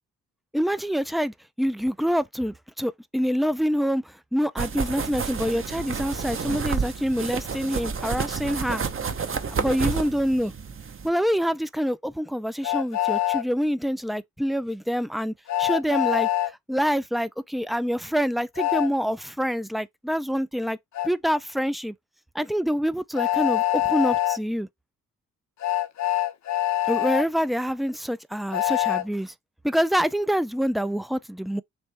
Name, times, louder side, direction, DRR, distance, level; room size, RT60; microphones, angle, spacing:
voice 1, 0.5-8.8 9.5-10.5 11.0-16.3 16.7-20.8 21.0-21.9 22.3-24.7 26.9-29.3 29.6-31.6, equal, ahead, 0.4 m, -26 dB
sound 1, 4.6-11.1, right 5 dB, 40° right, 0.9 m, -30 dB
Train, 12.6-13.4 15.5-16.5 18.6-18.9 21.0-21.1 23.2-24.4 25.6-27.3 28.5-29.0, left 14 dB, 55° left, 0.7 m, -24 dB
3.4 x 2.9 x 4.1 m
supercardioid pair, 55°, 34 cm